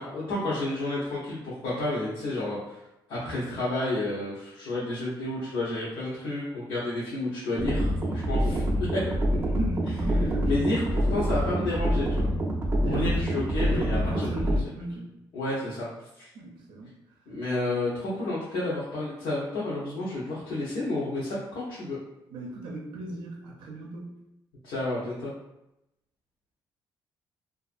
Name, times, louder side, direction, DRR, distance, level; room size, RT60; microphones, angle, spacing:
voice 1, 0.0-2.8 3.1-8.6 10.4-12.3 12.8-14.7 15.3-16.3 17.3-22.0 24.6-25.3, left 2 dB, 75° left, -9 dB, 0.7 m, -31 dB
sound 1, 7.6-14.6, equal, 30° right, 0.4 m, -26 dB
voice 2, 9.3-10.8 12.8-13.3 13.6-15.1 16.3-16.9 22.3-24.2, right 2 dB, 85° right, -2 dB, 0.5 m, -36 dB
2.4 x 2.4 x 2.5 m, 0.88 s
cardioid pair, 145°, 8 cm